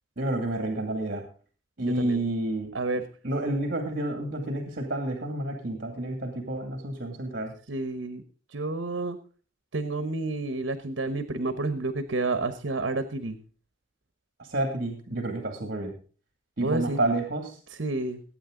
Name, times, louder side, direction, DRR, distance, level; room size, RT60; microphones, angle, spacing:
voice 1, 0.2-1.2 1.8-2.7 3.2-7.5 14.5-15.9 16.6-17.6, right 1 dB, 50° right, 4 dB, 2.4 m, -29 dB
voice 2, 1.8-2.2 2.7-3.0 7.7-8.2 8.5-9.2 9.7-13.4 16.6-17.0 17.7-18.2, right 2 dB, 70° right, 10 dB, 1.1 m, -30 dB
19.5 x 8.9 x 3.8 m, 0.39 s
head